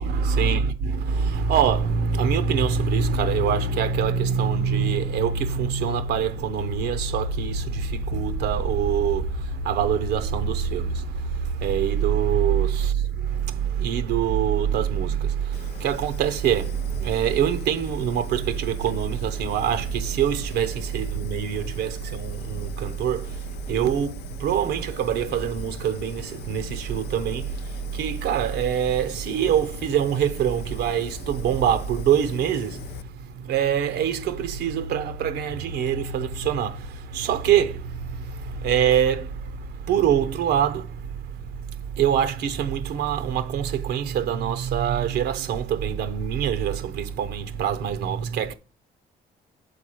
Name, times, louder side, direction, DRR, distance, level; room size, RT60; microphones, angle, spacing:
voice 1, 0.0-41.5 41.9-48.5, right 8 dB, 85° right, 0.9 m, -24 dB
Fire, 15.5-33.0, left 8 dB, 80° left, 0.6 m, -40 dB
6.9 x 4.0 x 6.1 m
cardioid pair, 90°, 17 cm